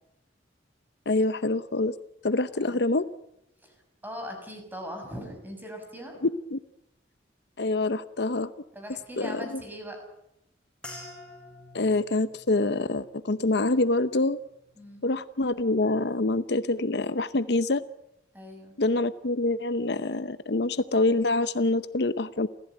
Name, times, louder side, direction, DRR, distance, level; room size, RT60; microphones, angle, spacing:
voice 1, 1.1-1.9 2.2-3.1 6.5-6.6 7.6-8.5 9.2-9.6 11.7-14.4 15.0-17.8 18.8-22.5, left 2 dB, 65° left, 14 dB, 0.8 m, -26 dB
voice 2, 4.0-6.1 8.7-10.0 14.8-15.0 18.3-18.7, equal, 10° right, 3 dB, 6.4 m, -40 dB
sound 1, 10.8-15.4 15.7-16.3 16.9-17.2, left 1 dB, 5° left, 7.2 m, -50 dB
29.0 x 15.0 x 9.1 m, 0.83 s
head